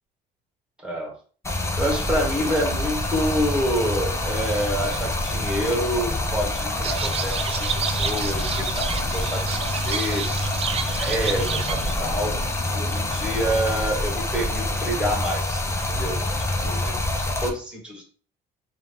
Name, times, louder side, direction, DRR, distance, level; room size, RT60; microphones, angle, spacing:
voice 1, 0.8-1.1 1.8-10.3 10.7-12.4 12.7-15.6 15.9-16.2 16.6-18.0, equal, 5° right, 0 dB, 1.7 m, -28 dB
Stream, 1.4-17.5, left 1 dB, 15° left, 0.7 m, -26 dB
sound 1, 6.8-11.9, right 7 dB, 35° right, 0.4 m, -30 dB
sound 2, 7.8-13.2, left 4 dB, 70° left, 1.0 m, -43 dB
3.7 x 2.8 x 3.4 m, 0.41 s
cardioid pair, 110°, 17 cm